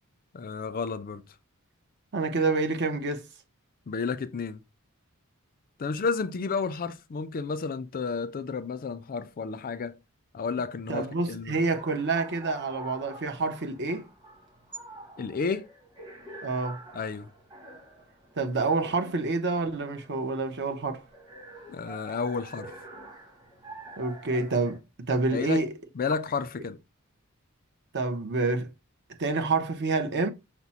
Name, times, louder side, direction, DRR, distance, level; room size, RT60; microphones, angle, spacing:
voice 1, 0.3-1.2 3.9-4.6 5.8-10.0 10.3-11.6 15.2-15.7 16.9-17.3 21.7-22.7 25.3-25.6 25.9-26.8, left 5 dB, 40° left, 0.4 m, -31 dB
voice 2, 2.1-3.2 10.9-14.1 16.4-16.8 18.4-21.0 24.0-24.8 25.1-25.7 27.9-28.7 29.2-30.3, right 3 dB, 50° right, 0.7 m, -28 dB
sound 1, 11.5-24.8, right 2 dB, 20° right, 1.1 m, -47 dB
5.9 x 2.0 x 4.1 m
head